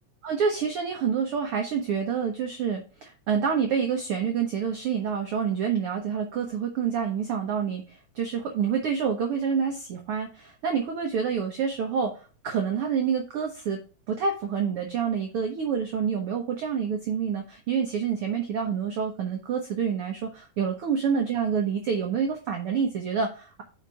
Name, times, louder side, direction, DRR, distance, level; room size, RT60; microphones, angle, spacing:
voice 1, 0.2-12.1 12.4-13.8 14.1-23.6, right 6 dB, 60° right, 3 dB, 1.6 m, -27 dB
5.6 x 5.2 x 6.2 m, 0.36 s
omnidirectional pair, 3.5 m